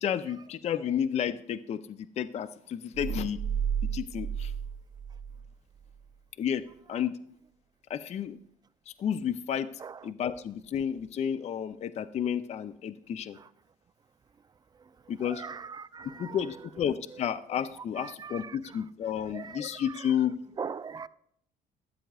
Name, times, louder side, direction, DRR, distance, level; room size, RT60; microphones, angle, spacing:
voice 1, 0.0-3.4 3.9-4.5 6.4-6.6 6.9-7.2 7.9-8.4 8.9-9.7 10.0-13.4 15.1-15.4 16.2-20.4, left 9 dB, 40° left, 0.4 m, -31 dB
sound 1, 2.9-5.5 5.8-6.0, right 8 dB, 50° right, 0.8 m, -33 dB
voice 2, 9.8-10.1 13.3-13.5 15.1-16.6 17.1-17.2 17.7-18.9 19.2-20.3 20.6-21.1, right 6 dB, 25° right, 0.3 m, -42 dB
13.5 x 9.0 x 2.3 m
cardioid pair, 110°, 17 cm